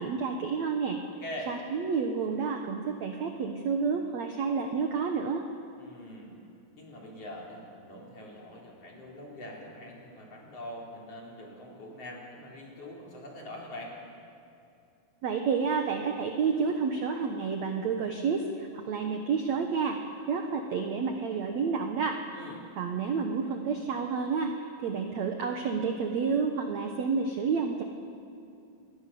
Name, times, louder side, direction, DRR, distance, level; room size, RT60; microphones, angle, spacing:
voice 1, 0.0-1.0 1.5-5.4 15.2-20.0 20.3-22.2 22.8-27.8, right 5 dB, 75° right, 4 dB, 1.6 m, -30 dB
voice 2, 1.2-1.6 5.8-6.4 6.7-13.9 22.3-22.7, left 1 dB, 35° left, -2 dB, 4.6 m, -43 dB
26.5 x 21.5 x 7.0 m, 2.6 s
omnidirectional pair, 5.1 m